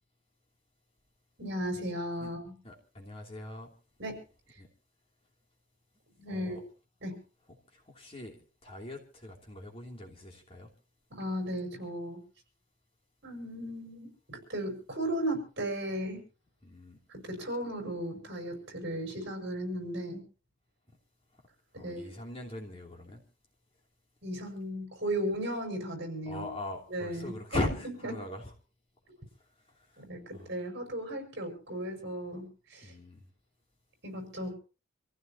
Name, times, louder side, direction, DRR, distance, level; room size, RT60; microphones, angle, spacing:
voice 1, 1.4-2.5 4.0-4.2 6.2-6.6 7.0-7.2 11.1-12.2 13.2-16.2 17.1-20.2 21.7-22.2 24.2-26.5 26.9-27.6 28.0-28.1 30.0-32.9 34.0-34.5, right 1 dB, 55° right, 4 dB, 6.1 m, -36 dB
voice 2, 2.6-3.7 4.6-4.7 6.3-6.6 7.7-10.7 16.6-17.0 21.8-23.2 26.3-28.5 30.3-30.5 32.8-33.2, left 1 dB, 30° left, 0 dB, 2.9 m, -40 dB
26.5 x 15.5 x 2.9 m, 0.36 s
head